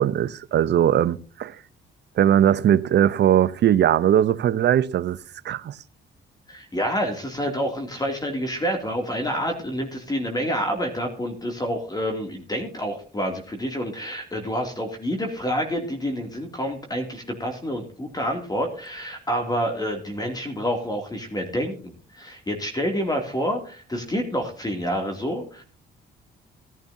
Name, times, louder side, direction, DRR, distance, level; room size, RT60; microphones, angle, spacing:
voice 1, 0.0-1.5 2.2-5.2 5.4-5.8, right 10 dB, 60° right, 0.8 m, -20 dB
voice 2, 6.5-25.6, equal, 20° left, 2.6 m, -28 dB
17.0 x 11.0 x 2.7 m
cardioid pair, 90°, 20 cm